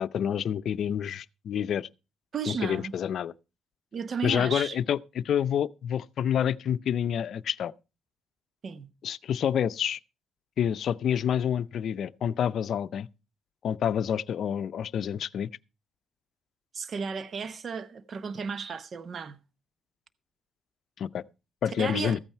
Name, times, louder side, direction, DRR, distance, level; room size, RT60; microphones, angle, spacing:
voice 1, 0.0-1.9 2.5-3.3 4.2-7.7 9.0-10.0 10.6-13.1 13.6-15.5 21.0-21.2 21.6-22.2, left 9 dB, 65° left, 0.5 m, -28 dB
voice 2, 2.3-2.9 3.9-4.8 8.6-8.9 16.7-19.4 21.8-22.2, right 5 dB, 50° right, 0.8 m, -34 dB
14.5 x 8.9 x 4.5 m
cardioid pair, 90°, 0 cm